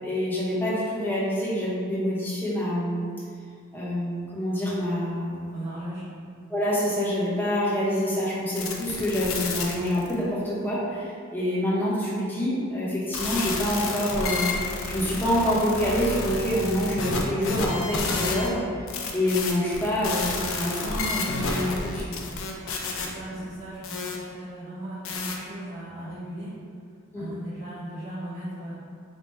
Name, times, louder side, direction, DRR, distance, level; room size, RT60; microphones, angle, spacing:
voice 1, 0.0-3.1 3.7-5.5 6.5-14.5 14.9-18.6 19.1-22.2 23.3-23.4 27.1-27.3, equal, 10° left, -8 dB, 0.7 m, -26 dB
voice 2, 5.5-6.1 22.9-26.5 27.1-28.7, right 1 dB, 35° right, -13 dB, 0.8 m, -37 dB
sound 1, 8.6-10.1 13.1-18.5 18.9-24.2 25.1-25.4, left 3 dB, 65° left, 0.4 m, -30 dB
3.3 x 2.1 x 4.1 m, 2.2 s
head